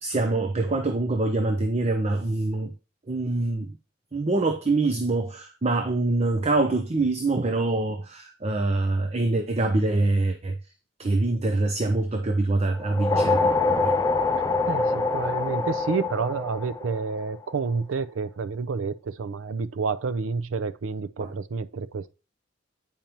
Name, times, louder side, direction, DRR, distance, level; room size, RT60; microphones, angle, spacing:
voice 1, 0.0-2.7 3.1-3.7 4.1-10.6 11.0-13.9 14.6-14.7 21.2-21.3, right 2 dB, 35° right, 0.7 m, -25 dB
sound 1, 12.8-17.4, left 3 dB, 20° left, 0.5 m, -25 dB
voice 2, 14.6-22.1, right 4 dB, 85° right, 0.5 m, -29 dB
8.7 x 5.3 x 2.9 m
head